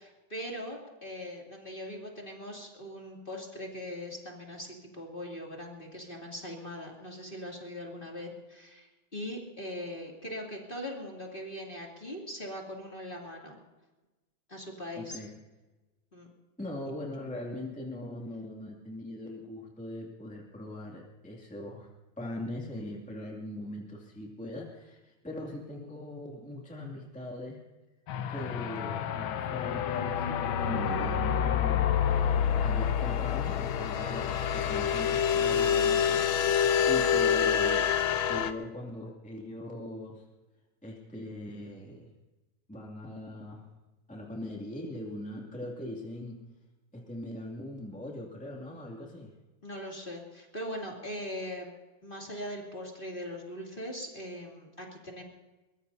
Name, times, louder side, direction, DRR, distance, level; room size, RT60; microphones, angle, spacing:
voice 1, 0.0-13.5 14.5-15.2 16.1-16.3 49.6-51.7 52.0-55.2, equal, 25° left, -1 dB, 3.0 m, -40 dB
voice 2, 15.0-15.3 16.6-21.9 22.2-27.6 28.3-32.0 32.6-40.2 40.8-42.1 42.7-43.7 44.1-46.5 46.9-49.3, left 1 dB, 5° left, -2 dB, 2.4 m, -41 dB
sound 1, 28.1-38.5, left 8 dB, 90° left, 1.7 m, -27 dB
23.0 x 21.0 x 2.8 m, 1.1 s
omnidirectional pair, 2.2 m